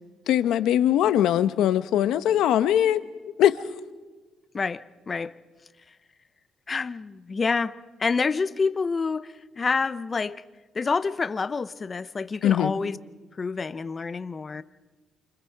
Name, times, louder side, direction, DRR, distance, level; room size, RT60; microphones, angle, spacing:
voice 1, 0.3-3.0 3.4-3.6 12.4-12.7, left 11 dB, 85° left, 1.0 m, -21 dB
voice 2, 4.5-5.3 6.7-10.4 10.7-13.0 13.4-14.6, left 4 dB, 30° left, 0.8 m, -28 dB
28.5 x 26.0 x 4.7 m
cardioid pair, 105°, 0 cm